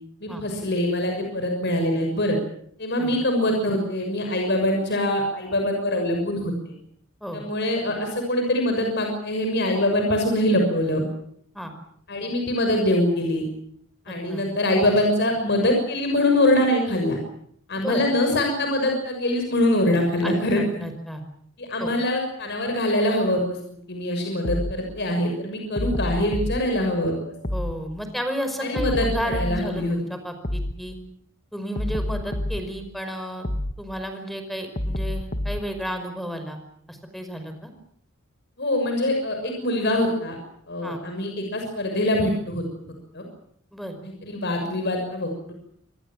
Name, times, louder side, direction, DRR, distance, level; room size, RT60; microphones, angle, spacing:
voice 1, 0.2-2.4 2.8-6.7 7.3-11.0 12.1-13.4 14.1-17.2 17.7-20.8 21.6-23.6 23.9-27.3 28.6-30.0 38.6-40.4 40.7-42.6 43.1-43.2 44.0-45.5, left 1 dB, 55° left, 3 dB, 6.6 m, -23 dB
voice 2, 14.1-14.4 17.7-18.0 20.2-21.2 21.8-21.9 27.5-31.0 31.5-33.5 33.8-36.6 36.9-37.7 40.8-41.0 43.7-44.0, equal, ahead, 8 dB, 5.2 m, -32 dB
sound 1, 24.4-24.8 25.8-26.6 27.4-27.8 28.8-29.7 30.4-30.8 31.8-32.7 33.4-33.8 34.8-35.7, left 1 dB, 40° left, 1.9 m, -27 dB
27.0 x 20.5 x 7.5 m, 0.67 s
head